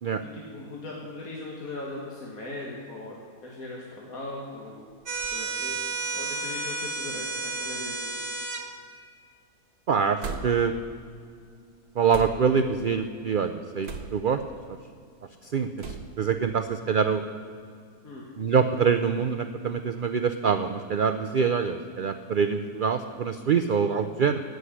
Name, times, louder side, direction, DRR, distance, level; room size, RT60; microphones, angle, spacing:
voice 1, 0.2-4.9 5.3-5.8 6.1-8.1 18.0-18.3, left 2 dB, 70° left, -3 dB, 2.1 m, -39 dB
sound 1, 5.1-8.6, right 3 dB, 45° right, 1.4 m, -32 dB
sound 2, 5.1-5.4 6.2-6.3 7.6-7.8 8.1-8.6 10.2-10.8 12.1-12.6 13.8-14.4 15.8-16.2, right 4 dB, 80° right, 1.7 m, -38 dB
voice 2, 9.9-10.7 12.0-14.4 14.7-14.8 15.4-17.2 18.4-24.4, right 6 dB, 60° right, 9 dB, 0.5 m, -25 dB
16.5 x 6.4 x 9.9 m, 2.2 s
omnidirectional pair, 1.6 m